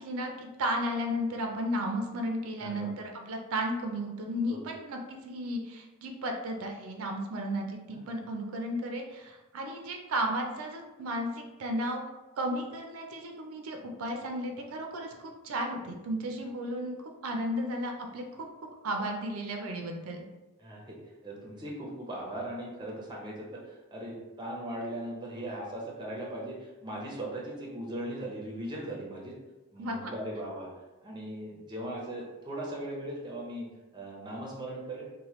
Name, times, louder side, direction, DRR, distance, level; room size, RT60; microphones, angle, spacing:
voice 1, 0.0-12.0 12.4-18.5 18.8-20.2 29.8-30.1, equal, 80° right, 3 dB, 0.4 m, -34 dB
voice 2, 2.6-2.9 4.5-4.6 8.0-8.1 20.6-29.3 29.7-30.7 31.0-33.7 33.9-35.1, right 1 dB, 20° right, -3 dB, 0.5 m, -39 dB
2.9 x 2.1 x 3.0 m, 1.1 s
head